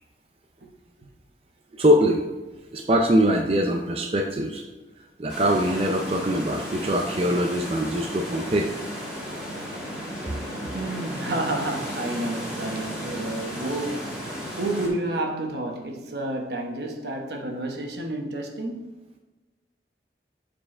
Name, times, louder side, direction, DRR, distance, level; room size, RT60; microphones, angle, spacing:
voice 1, 1.7-2.2 2.7-4.6 5.2-8.7, equal, 30° right, 0.4 m, -22 dB
sound 1, 5.3-14.9, equal, 5° right, 2.0 m, -34 dB
voice 2, 10.7-18.8, right 1 dB, 65° right, 1.0 m, -30 dB
7.6 x 4.5 x 4.3 m
head